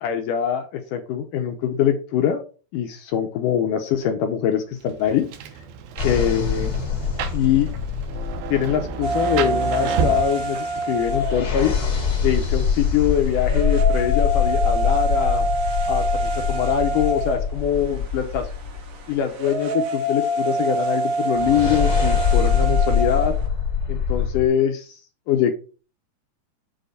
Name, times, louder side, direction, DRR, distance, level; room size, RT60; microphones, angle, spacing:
voice 1, 0.0-2.4 2.7-5.3 6.0-6.7 7.3-7.7 8.5-11.8 12.2-15.5 15.9-18.5 19.1-23.3 23.9-25.0 25.3-25.5, left 9 dB, 75° left, 6 dB, 2.1 m, -23 dB
Rain, 4.8-13.9, right 6 dB, 75° right, 2.7 m, -32 dB
sound 1, 6.0-9.5 11.0-19.0 21.3-24.5, left 6 dB, 30° left, 2.8 m, -24 dB
sound 2, 9.0-23.5, right 2 dB, 55° right, 2.1 m, -27 dB
7.7 x 3.9 x 6.7 m, 0.36 s
omnidirectional pair, 4.5 m